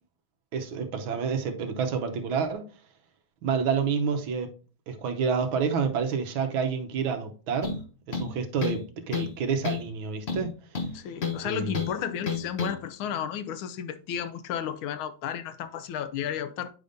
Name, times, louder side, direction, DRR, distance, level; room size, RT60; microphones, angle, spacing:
voice 1, 0.5-2.6 3.4-4.5 4.9-7.8 8.1-10.5 11.4-11.7, right 6 dB, 80° right, 1.7 m, -28 dB
sound 1, 7.6-7.8 8.1-8.8 9.1-9.4 9.6-9.9 10.3-11.4 11.7-11.9 12.3-12.7, left 5 dB, 40° left, 1.0 m, -30 dB
voice 2, 10.9-16.7, left 9 dB, 90° left, 1.5 m, -33 dB
9.4 x 5.1 x 2.6 m
omnidirectional pair, 2.2 m